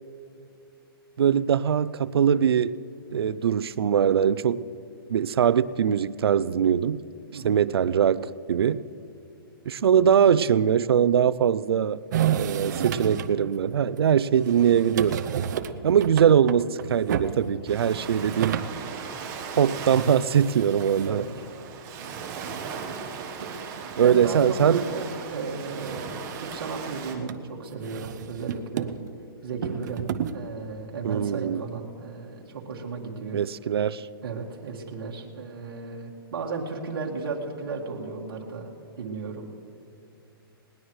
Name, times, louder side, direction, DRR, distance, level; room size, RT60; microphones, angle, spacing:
voice 1, 1.2-2.7 3.1-4.6 5.1-7.0 7.3-8.8 9.7-12.0 12.4-15.3 15.8-18.6 19.6-21.3 24.0-24.8 31.0-31.6 33.3-34.1, right 8 dB, 90° right, 0.5 m, -22 dB
sound 1, 12.1-13.4 14.0-14.1 14.4-18.8 19.2-19.3 19.5-19.6 19.8-21.2 21.9-23.0 23.8-25.0 25.3-25.4 25.8-26.7 27.3-27.4 27.8-29.1 29.6-30.4, right 9 dB, 50° right, 0.8 m, -32 dB
Ocean, 17.7-27.2, right 6 dB, 20° right, 1.2 m, -38 dB
voice 2, 23.4-23.7 24.0-28.9 29.4-33.4 34.2-39.6, right 4 dB, 65° right, 2.1 m, -35 dB
20.0 x 19.0 x 3.2 m
hypercardioid pair, 160°, 13 cm